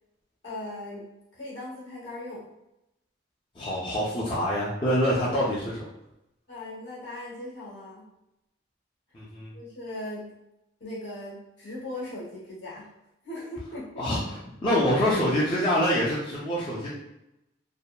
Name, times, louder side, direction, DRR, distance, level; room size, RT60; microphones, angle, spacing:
voice 1, 0.4-2.5 6.5-8.0 9.5-10.3 10.8-12.9 13.2-14.1, left 1 dB, 65° left, -6 dB, 0.9 m, -38 dB
voice 2, 3.6-5.8 9.1-9.5 14.0-16.9, equal, 25° left, -7 dB, 0.4 m, -26 dB
2.7 x 2.1 x 2.2 m, 0.89 s
head